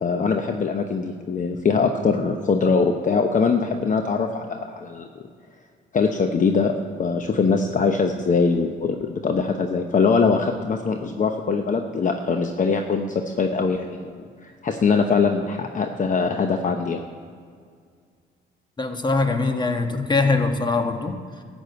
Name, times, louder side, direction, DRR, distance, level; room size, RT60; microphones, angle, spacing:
voice 1, 0.0-5.1 5.9-6.7 7.0-17.0, left 5 dB, 40° left, 5 dB, 0.8 m, -22 dB
voice 2, 18.8-21.4, left 3 dB, 20° left, 5 dB, 1.3 m, -23 dB
13.0 x 6.2 x 8.2 m, 2.1 s
cardioid pair, 90°, 20 cm